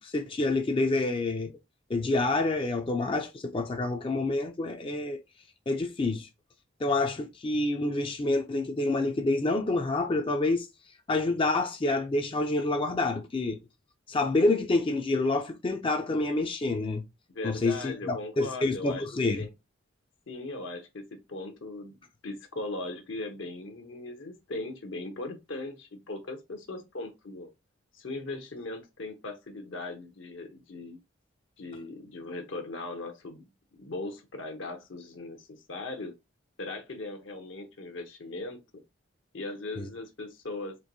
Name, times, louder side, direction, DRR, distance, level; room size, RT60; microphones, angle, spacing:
voice 1, 0.0-1.5 1.9-5.2 5.7-6.3 6.8-10.7 11.1-13.6 14.1-17.0 17.4-19.4 39.8-39.9, left 2 dB, 25° left, 0.4 m, -27 dB
voice 2, 17.3-19.0 19.4-19.5 20.3-22.0 22.2-27.5 27.9-31.0 31.6-33.5 33.7-36.1 36.6-38.8 39.3-40.8, left 2 dB, 70° left, 0.8 m, -39 dB
4.4 x 2.6 x 2.6 m
head